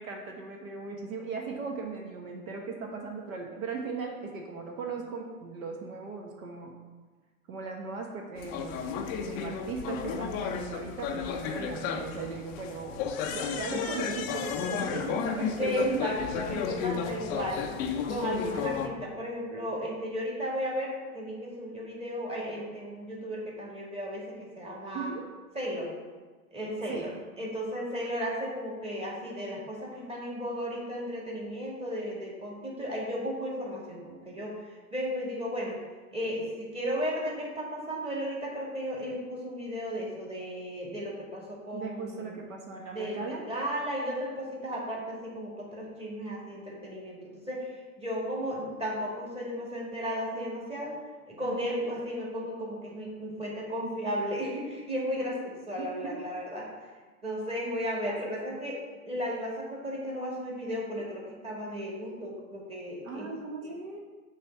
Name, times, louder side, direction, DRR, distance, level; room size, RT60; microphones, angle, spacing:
voice 1, 0.0-6.7 7.5-16.0 16.5-17.2 17.5-17.6 18.4-18.5 24.9-25.2 26.9-27.1 41.7-43.4 51.4-51.7 55.8-56.2 58.1-58.6 63.0-64.0, right 4 dB, 65° right, 1 dB, 1.2 m, -38 dB
sound 1, 8.4-18.9, left 7 dB, 20° left, 0.3 m, -33 dB
voice 2, 15.6-17.7 18.1-25.1 25.5-25.9 26.5-27.1 27.4-35.8 36.1-42.4 42.9-51.0 51.3-56.9 57.2-58.8 59.1-63.3 63.6-63.8, equal, 15° right, -4 dB, 2.0 m, -34 dB
6.7 x 3.4 x 5.8 m, 1.3 s
hypercardioid pair, 105°, 44 cm